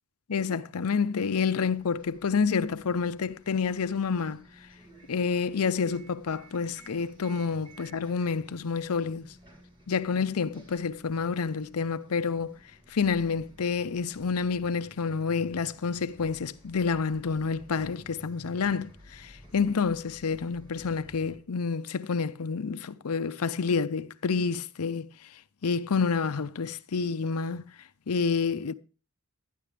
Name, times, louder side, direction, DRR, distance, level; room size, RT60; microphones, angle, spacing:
voice 1, 0.3-4.4 5.1-9.3 9.9-12.5 12.9-25.1 25.6-27.6 28.1-28.7, left 5 dB, 75° left, 0.6 m, -28 dB
Bus, 1.7-21.4, equal, 25° right, 4.3 m, -54 dB
12.5 x 10.0 x 3.3 m
head